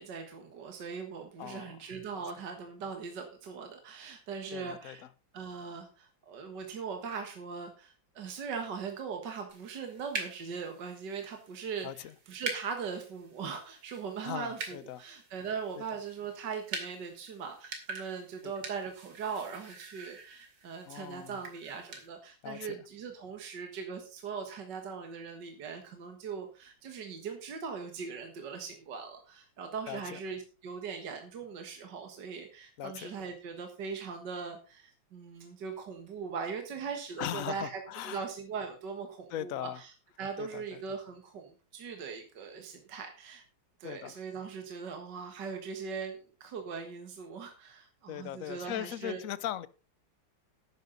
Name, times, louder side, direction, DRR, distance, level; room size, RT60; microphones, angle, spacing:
voice 1, 0.0-5.0 5.3-39.9 40.2-43.4 43.8-49.2, right 5 dB, 60° right, 4 dB, 2.1 m, -40 dB
voice 2, 1.4-1.8 2.1-2.2 4.5-5.0 11.8-12.1 14.2-15.0 15.7-15.8 20.9-21.4 22.4-22.8 29.9-30.2 32.8-33.1 37.2-38.2 39.3-39.8 40.4-40.8 43.8-44.2 48.1-49.7, left 12 dB, 65° left, 17 dB, 0.8 m, -39 dB
sound 1, 9.5-22.1, right 3 dB, 80° right, 3.2 m, -45 dB
12.0 x 9.8 x 3.9 m, 0.33 s
omnidirectional pair, 2.1 m